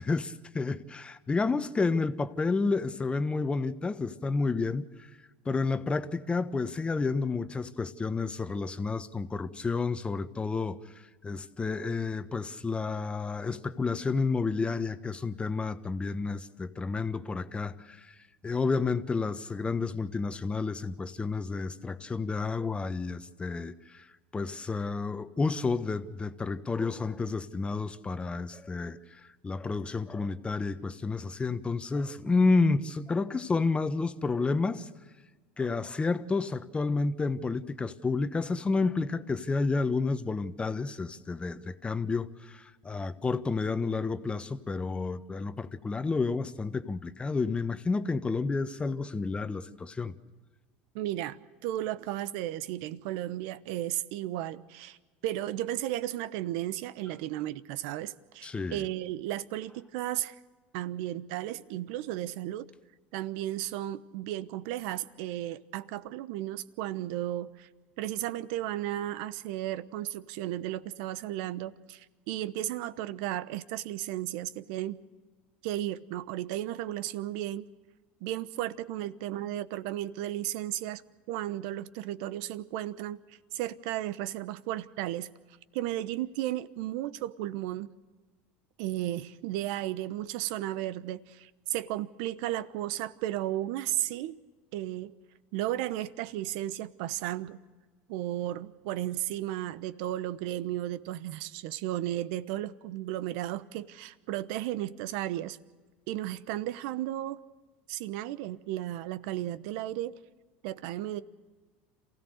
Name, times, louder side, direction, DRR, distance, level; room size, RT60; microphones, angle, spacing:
voice 1, 0.0-5.1 5.4-18.1 18.4-24.1 24.3-34.9 35.6-50.1 58.4-58.9, left 4 dB, 20° left, 1.3 m, -30 dB
voice 2, 50.9-55.0 55.2-60.3 60.7-62.7 63.1-67.7 68.0-75.0 75.6-77.7 78.2-81.0 81.3-85.3 85.7-87.9 88.8-94.4 94.7-95.1 95.5-97.6 98.1-105.6 106.1-107.4 107.9-110.2 110.6-111.2, right 14 dB, 70° right, 1.0 m, -34 dB
27.5 x 16.5 x 6.6 m
hypercardioid pair, 90°, 6 cm